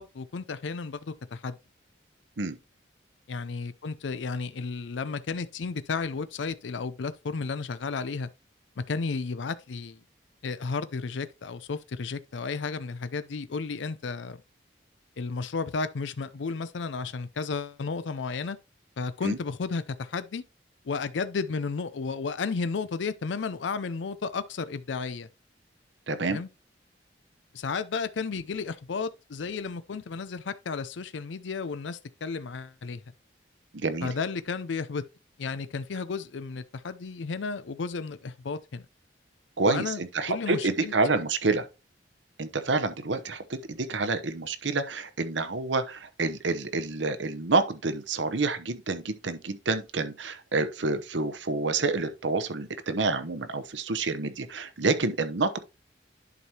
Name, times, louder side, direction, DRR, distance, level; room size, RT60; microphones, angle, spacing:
voice 1, 0.0-1.6 3.3-8.3 8.8-10.0 10.4-14.4 15.2-18.6 19.0-20.4 20.8-25.3 26.3-26.5 27.5-33.0 34.0-35.0 35.4-38.8 39.7-40.0 40.3-41.2, left 4 dB, 80° left, 0.5 m, -33 dB
voice 2, 26.1-26.4 33.7-34.1 39.6-41.7 42.4-55.6, right 3 dB, 80° right, 0.9 m, -28 dB
11.0 x 4.8 x 2.8 m
head